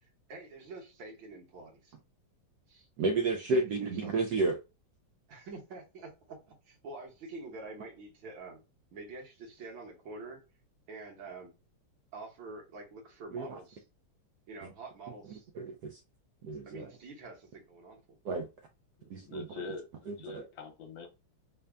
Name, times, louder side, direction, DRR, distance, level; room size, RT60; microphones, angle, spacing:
voice 1, 0.0-1.9 2.7-2.9 3.3-4.1 5.3-8.6 8.9-10.4 10.9-11.5 12.1-13.8 14.5-15.5 16.6-18.0, right 3 dB, 70° right, 1.8 m, -47 dB
voice 2, 3.0-4.6 13.3-13.6 15.6-16.0 16.4-16.9 18.2-18.5 19.1-19.6 20.1-20.4, right 3 dB, 90° right, 0.8 m, -31 dB
voice 3, 19.0-21.1, left 4 dB, 70° left, 1.5 m, -44 dB
4.0 x 2.2 x 3.4 m
omnidirectional pair, 2.3 m